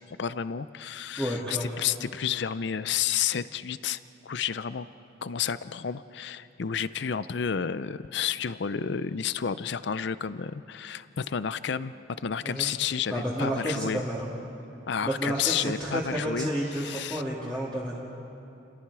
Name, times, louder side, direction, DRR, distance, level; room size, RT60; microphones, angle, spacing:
voice 1, 0.1-4.9 5.2-14.0 14.9-17.2, left 7 dB, 60° left, 15 dB, 0.5 m, -31 dB
voice 2, 1.1-1.8 12.4-12.7 13.1-14.3 15.0-18.1, right 1 dB, 5° left, -7 dB, 2.3 m, -31 dB
30.0 x 20.0 x 4.8 m, 2.7 s
head